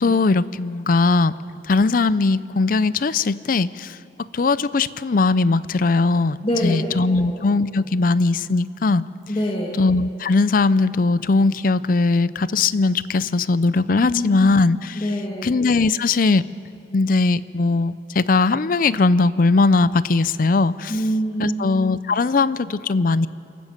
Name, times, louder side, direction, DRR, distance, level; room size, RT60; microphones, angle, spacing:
voice 1, 0.0-1.3 1.7-6.4 6.6-9.1 9.8-15.0 15.4-16.4 16.9-20.9 21.4-23.3, left 3 dB, 50° left, 17 dB, 0.5 m, -19 dB
voice 2, 6.4-6.8 7.1-7.3 9.3-9.7 14.0-14.6 15.0-15.5 20.9-21.5, equal, 30° left, -1 dB, 1.9 m, -24 dB
27.5 x 12.5 x 7.9 m, 2.5 s
head